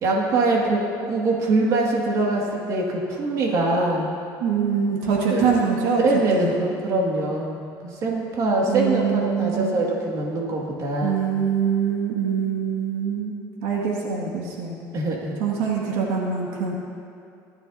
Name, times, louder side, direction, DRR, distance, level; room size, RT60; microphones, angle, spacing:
voice 1, 0.0-4.1 5.3-5.5 6.0-11.3 14.9-15.4, right 2 dB, 50° right, -2 dB, 2.3 m, -23 dB
voice 2, 4.4-6.0 6.3-6.5 8.7-9.8 11.0-13.3 13.6-14.8 15.4-16.7, right 6 dB, 85° right, -2 dB, 2.1 m, -24 dB
19.0 x 13.0 x 2.8 m, 2.5 s
cardioid pair, 125°, 7 cm